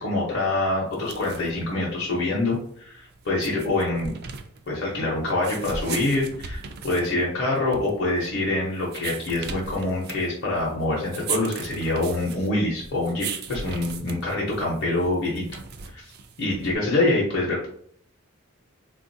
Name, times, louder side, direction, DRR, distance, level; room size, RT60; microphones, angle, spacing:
voice 1, 0.0-4.1 4.7-15.4 15.9-16.1 16.4-17.7, left 2 dB, 55° left, -5 dB, 0.7 m, -25 dB
sound 1, 0.9-16.8, right 5 dB, 50° right, 0.3 m, -38 dB
3.4 x 2.4 x 2.6 m, 0.64 s
head